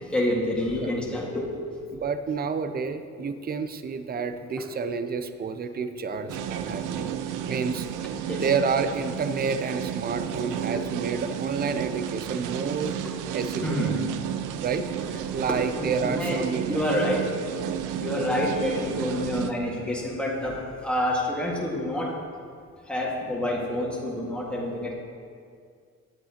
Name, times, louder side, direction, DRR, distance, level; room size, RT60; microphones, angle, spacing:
voice 1, 0.1-1.5 4.6-4.7 6.3-6.4 7.0-7.2 8.3-8.5 13.5-14.0 15.5-16.4 16.7-17.6 18.0-22.1 22.9-24.9, left 1 dB, 5° left, -4 dB, 1.8 m, -28 dB
voice 2, 1.9-7.1 7.5-7.9 8.4-13.0 13.3-13.9 14.6-14.9 15.3-16.8, right 5 dB, 30° right, 10 dB, 0.5 m, -29 dB
sound 1, 6.3-19.5, right 9 dB, 85° right, 0.5 m, -32 dB
10.0 x 8.0 x 2.9 m, 2.2 s
cardioid pair, 90°, 30 cm